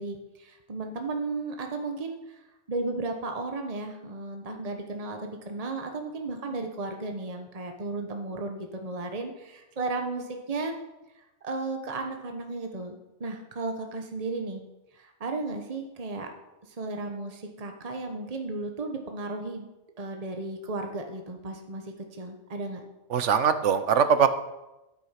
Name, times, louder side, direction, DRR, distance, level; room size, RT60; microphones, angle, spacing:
voice 1, 0.0-2.2 2.7-10.7 11.4-14.6 14.9-16.3 16.8-19.7 20.0-21.8 22.1-22.8, right 3 dB, 35° right, 4 dB, 1.2 m, -34 dB
voice 2, 23.1-24.3, right 7 dB, 75° right, 11 dB, 1.2 m, -21 dB
12.5 x 9.0 x 5.8 m, 1.0 s
omnidirectional pair, 1.2 m